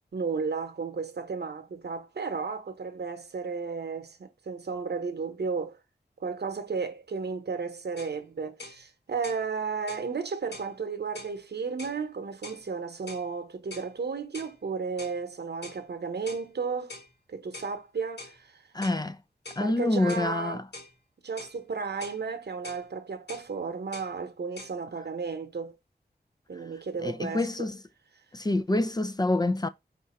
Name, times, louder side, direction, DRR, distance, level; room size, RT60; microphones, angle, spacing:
voice 1, 0.1-5.8 6.2-16.9 17.3-18.6 19.6-20.6 21.2-25.8 26.5-27.7, right 5 dB, 75° right, 0.8 m, -33 dB
sound 1, 8.0-8.2 8.6-8.8 9.2-9.5 9.9-10.1 10.5-10.7 11.2-11.4 11.8-12.0 12.4-12.6 13.1-13.3 13.7-13.9 14.3-14.6 15.0-15.2 15.6-15.8 16.3-16.5 16.9-17.1 17.5-17.8 18.2-18.4 18.8-19.0 19.5-19.7 20.1-20.3 20.7-20.9 21.4-21.6 22.0-22.2 22.6-22.9 23.3-23.5 23.9-24.1 24.6-24.7, left 2 dB, 80° left, 1.0 m, -44 dB
voice 2, 18.7-19.2 19.6-20.6 27.0-27.8 28.3-29.7, left 2 dB, 25° left, 0.4 m, -27 dB
4.6 x 2.5 x 4.1 m
wide cardioid pair, 90°, 17 cm